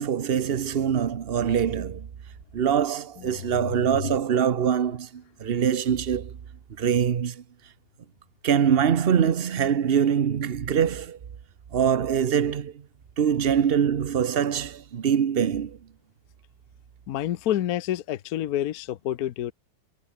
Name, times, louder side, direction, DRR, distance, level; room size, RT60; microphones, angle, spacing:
voice 1, 0.0-2.1 2.5-6.4 6.8-7.4 8.4-11.2 11.7-12.8 13.2-15.8, right 8 dB, 55° right, 0.6 m, -24 dB
voice 2, 17.1-19.5, left 12 dB, 60° left, 1.0 m, -28 dB
omnidirectional pair, 2.2 m